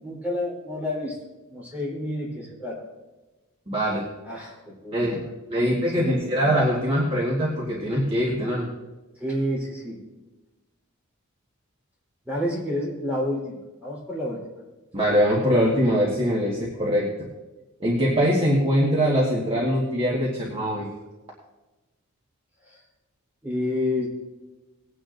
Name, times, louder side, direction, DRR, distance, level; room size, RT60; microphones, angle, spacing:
voice 1, 0.0-1.2 1.5-2.9 4.2-5.3 5.5-6.3 9.2-10.0 12.3-14.4 22.7-22.8 23.4-24.1, left 1 dB, 10° right, -6 dB, 3.7 m, -30 dB
voice 2, 3.7-4.1 4.9-5.2 5.5-8.7 14.9-17.1 17.8-20.9, equal, 25° right, -4 dB, 1.6 m, -22 dB
20.0 x 9.3 x 2.6 m, 1.1 s
head